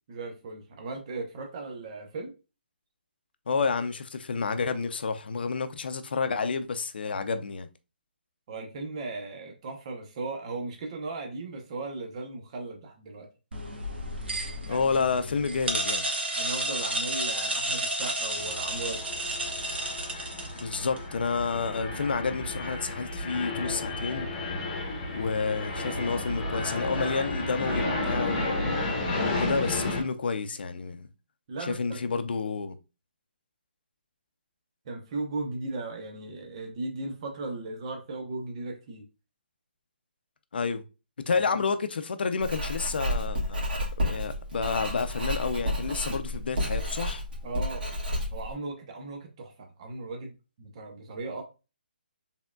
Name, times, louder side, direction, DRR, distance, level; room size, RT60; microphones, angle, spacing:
voice 1, 0.1-2.3 8.5-13.3 14.6-15.2 16.4-19.0 31.5-32.0 34.9-39.1 41.3-41.6 47.4-47.8 48.3-50.3 50.6-51.4, right 3 dB, 35° right, 0.8 m, -37 dB
voice 2, 3.5-7.7 14.7-16.1 20.6-24.3 25.1-28.6 29.1-31.1 31.7-32.8 40.5-40.8 41.3-43.6 44.0-47.2, left 5 dB, 70° left, 0.5 m, -30 dB
sound 1, 13.5-21.0, right 1 dB, 90° right, 1.2 m, -32 dB
sound 2, 18.4-30.0, left 2 dB, 20° left, 1.2 m, -32 dB
Writing, 42.4-48.5, left 1 dB, 60° right, 1.9 m, -31 dB
4.4 x 3.5 x 2.3 m
hypercardioid pair, 165°, 6 cm